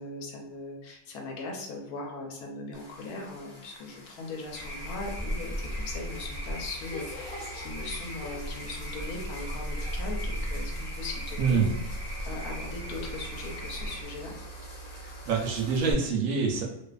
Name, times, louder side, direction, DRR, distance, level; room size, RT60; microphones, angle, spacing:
voice 1, 0.0-11.9 12.3-14.3, left 2 dB, 75° left, 1 dB, 1.0 m, -39 dB
sound 1, 2.7-15.9, left 1 dB, 40° left, 0.5 m, -46 dB
sound 2, 4.5-14.0, equal, 5° right, 1.1 m, -39 dB
sound 3, 5.5-15.8, right 1 dB, 35° right, 0.6 m, -39 dB
voice 2, 11.4-11.7 15.3-16.6, right 5 dB, 70° right, 0 dB, 0.8 m, -25 dB
2.5 x 2.4 x 2.3 m, 0.91 s
omnidirectional pair, 1.7 m